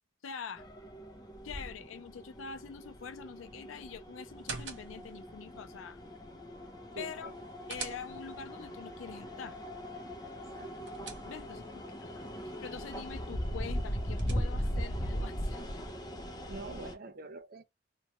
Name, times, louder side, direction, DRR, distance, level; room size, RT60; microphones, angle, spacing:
voice 1, 0.2-0.6 1.4-6.0 7.0-7.3 7.7-9.6 11.2-12.2 12.6-15.6, left 6 dB, 90° left, 0.5 m, -45 dB
sound 1, 0.6-16.9, equal, 20° left, 0.6 m, -39 dB
sound 2, 4.3-5.2 7.2-8.5 10.4-11.7 13.7-14.8, right 5 dB, 65° right, 0.9 m, -46 dB
voice 2, 6.9-7.3 10.3-10.7 16.5-17.6, right 3 dB, 50° right, 0.5 m, -45 dB
3.0 x 2.2 x 2.9 m
head